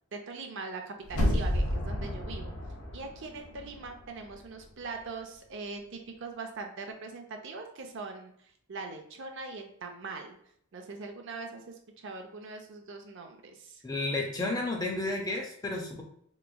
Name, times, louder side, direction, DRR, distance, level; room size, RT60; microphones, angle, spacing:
voice 1, 0.1-2.5 2.9-8.3 8.7-10.4 10.7-13.8, right 4 dB, 55° right, 4 dB, 0.5 m, -41 dB
sound 1, 1.1-4.0 4.3-4.4, left 1 dB, 80° left, 0.9 m, -31 dB
voice 2, 13.8-16.0, left 2 dB, 15° left, 1 dB, 0.5 m, -32 dB
3.4 x 3.0 x 2.2 m, 0.67 s
head